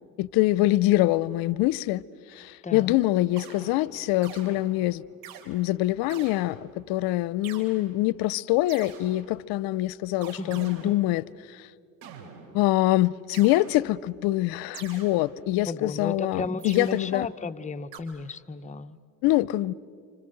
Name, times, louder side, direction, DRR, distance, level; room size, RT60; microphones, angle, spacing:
voice 1, 0.2-2.0 2.3-5.0 5.5-11.2 11.5-11.6 12.5-17.3 19.2-19.7, left 17 dB, 70° left, 0.7 m, -24 dB
voice 2, 2.6-3.0 10.4-11.1 15.7-19.0, left 3 dB, 20° left, 0.9 m, -34 dB
sound 1, 3.3-5.5 6.1-6.9 7.4-7.7 8.7-9.5 10.2-11.4 12.0-12.8 13.3-14.2 14.7-15.7 16.6-17.4 17.9-18.0, right 7 dB, 70° right, 3.9 m, -46 dB
28.5 x 26.0 x 7.9 m
supercardioid pair, 100°, 37 cm